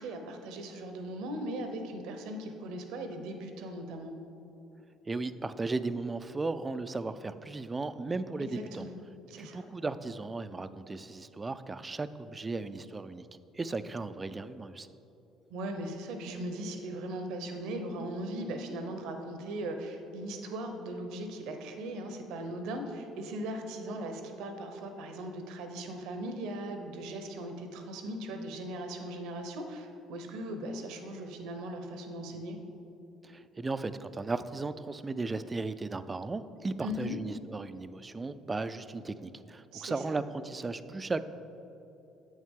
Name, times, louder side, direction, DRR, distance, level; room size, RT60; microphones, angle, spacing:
voice 1, 0.0-4.1 8.4-9.7 15.5-32.6 36.8-37.2 39.7-40.2, right 1 dB, 75° right, 6 dB, 0.8 m, -39 dB
voice 2, 5.1-8.9 9.4-13.3 13.5-14.9 33.2-41.2, right 3 dB, 25° right, 12 dB, 0.3 m, -36 dB
8.0 x 6.4 x 3.6 m, 3.0 s
hypercardioid pair, 60°, 0 cm